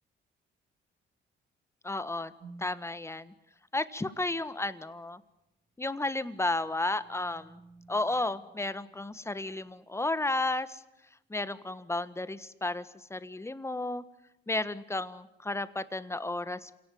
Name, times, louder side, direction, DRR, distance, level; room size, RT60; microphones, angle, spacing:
voice 1, 1.8-2.3 2.6-3.3 3.7-5.2 5.8-7.6 7.9-10.8 11.3-14.0 14.5-16.8, left 2 dB, 15° left, 14 dB, 1.5 m, -33 dB
sound 1, 2.4-3.0 5.8-9.3, right 3 dB, 40° right, 3.7 m, -55 dB
27.0 x 18.0 x 9.4 m, 0.87 s
cardioid pair, 90°, 20 cm